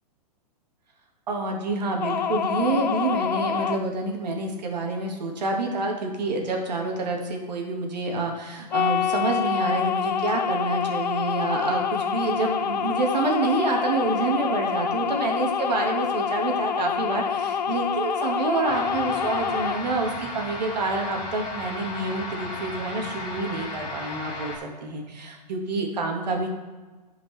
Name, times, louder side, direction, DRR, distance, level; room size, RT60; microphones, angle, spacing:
voice 1, 1.3-26.5, right 3 dB, 75° right, 2 dB, 1.9 m, -27 dB
sound 1, 2.0-3.8 8.7-19.8, left 7 dB, 90° left, 0.6 m, -26 dB
sound 2, 18.7-24.6, left 2 dB, 30° left, 2.2 m, -35 dB
12.5 x 5.1 x 3.4 m, 1.2 s
hypercardioid pair, 150°, 21 cm